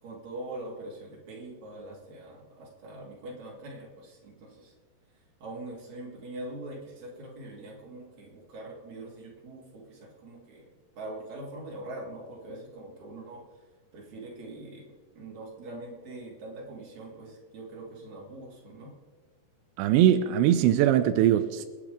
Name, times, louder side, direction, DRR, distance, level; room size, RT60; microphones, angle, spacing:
voice 1, 0.0-4.7 5.4-10.7 11.0-13.4 13.9-14.9 15.2-18.9, right 2 dB, 40° right, -3 dB, 4.0 m, -43 dB
voice 2, 19.8-21.7, right 11 dB, 85° right, 9 dB, 2.9 m, -21 dB
27.0 x 10.0 x 3.6 m, 1.4 s
omnidirectional pair, 5.1 m